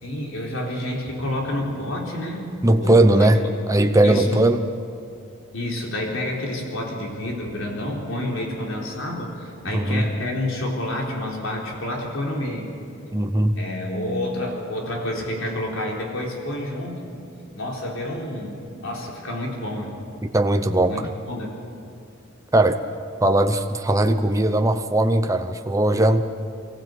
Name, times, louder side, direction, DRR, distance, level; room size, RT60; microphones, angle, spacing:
voice 1, 0.0-2.4 2.8-3.3 4.0-4.4 5.5-12.7 13.6-17.1 17.5-20.0 20.9-21.5, left 1 dB, 75° left, -1 dB, 4.1 m, -29 dB
voice 2, 2.6-3.4 3.7-4.7 9.7-10.1 13.1-13.6 20.3-21.1 22.5-22.8 23.2-26.2, right 1 dB, 15° right, 7 dB, 0.7 m, -19 dB
23.5 x 15.5 x 8.1 m, 2.5 s
head